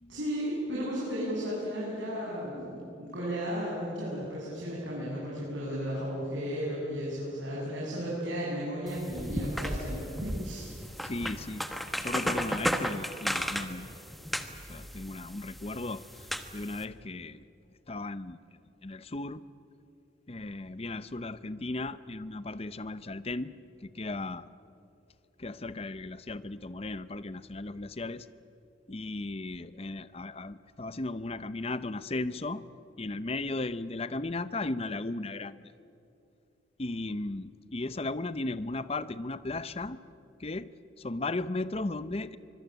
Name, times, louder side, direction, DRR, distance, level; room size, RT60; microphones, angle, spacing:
voice 1, 0.1-10.7, equal, 75° right, -6 dB, 7.5 m, -34 dB
sound 1, 8.9-16.8, equal, ahead, 1.2 m, -35 dB
voice 2, 11.0-13.9 14.7-16.0 16.5-17.4 17.9-18.4 18.8-19.4 20.3-23.5 23.8-24.5 25.4-28.3 28.9-32.6 33.0-35.6 36.8-40.0 40.4-40.7 41.0-42.4, left 2 dB, 30° left, 15 dB, 0.7 m, -36 dB
24.5 x 23.0 x 9.3 m, 2.7 s
head